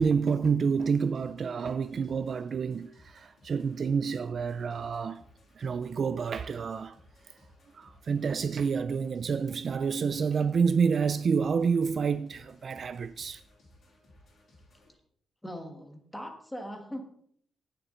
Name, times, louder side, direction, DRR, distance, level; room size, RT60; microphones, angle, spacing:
voice 1, 0.0-5.2 5.6-7.0 7.3-7.4 7.7-13.4, right 6 dB, 40° right, 0.3 m, -28 dB
sound 1, 0.7-14.9, left 1 dB, 45° left, 3.7 m, -60 dB
voice 2, 15.4-17.0, equal, 5° left, 1.5 m, -40 dB
18.0 x 6.8 x 3.8 m
wide cardioid pair, 175°, 0 cm